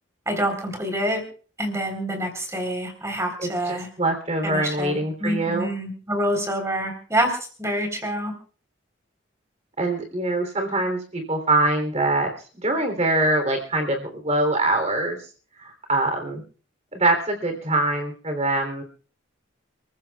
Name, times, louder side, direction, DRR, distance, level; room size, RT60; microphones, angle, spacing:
voice 1, 0.3-1.2 1.6-3.9 4.4-4.9 5.2-7.3 7.6-8.3, equal, 15° right, 5 dB, 3.9 m, -26 dB
voice 2, 3.4-5.7 9.8-12.3 12.6-15.2 15.6-16.4 16.9-18.8, right 2 dB, 35° right, 5 dB, 3.2 m, -24 dB
29.5 x 15.0 x 2.4 m, 0.41 s
head